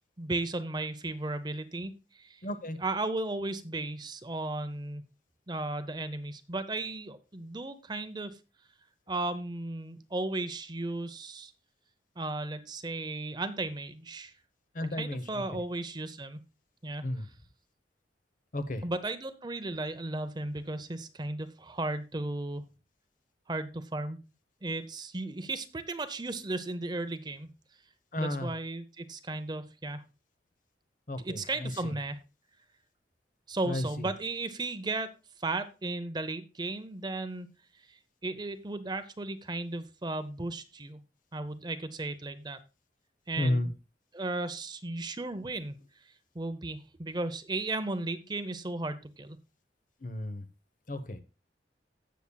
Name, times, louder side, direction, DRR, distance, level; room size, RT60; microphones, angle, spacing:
voice 1, 0.2-2.4 2.8-5.0 5.5-8.3 9.1-11.5 12.2-14.3 14.9-16.4 16.8-17.3 18.8-22.6 23.5-24.2 24.6-27.5 28.2-30.0 31.2-32.2 33.5-35.1 35.4-37.5 37.9-41.0 41.3-42.6 43.3-43.7 44.1-45.8 46.3-49.4, right 2 dB, 25° right, 11 dB, 0.6 m, -35 dB
voice 2, 2.4-2.8 14.7-15.2 17.0-17.3 18.5-18.8 28.1-28.5 31.1-31.9 33.7-34.1 43.4-43.7 50.0-50.4 50.9-51.2, left 1 dB, 45° left, 11 dB, 0.9 m, -33 dB
16.5 x 7.1 x 2.3 m, 0.30 s
head